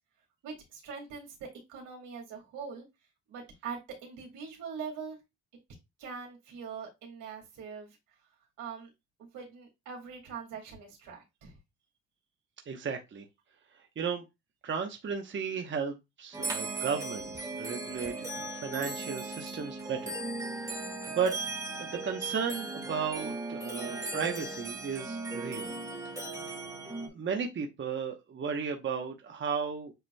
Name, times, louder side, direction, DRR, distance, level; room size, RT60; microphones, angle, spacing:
voice 1, 0.4-2.9 3.3-5.2 6.0-8.0 8.6-8.9 9.3-11.6, right 6 dB, 90° right, 2.2 m, -42 dB
voice 2, 12.7-13.2 14.0-14.2 14.6-20.2 20.6-21.4 21.7-25.7 26.2-26.4 27.1-29.9, right 6 dB, 40° right, 0.9 m, -35 dB
sound 1, 16.3-27.1, right 3 dB, 10° right, 1.3 m, -37 dB
7.8 x 2.9 x 2.2 m
cardioid pair, 90°, 30 cm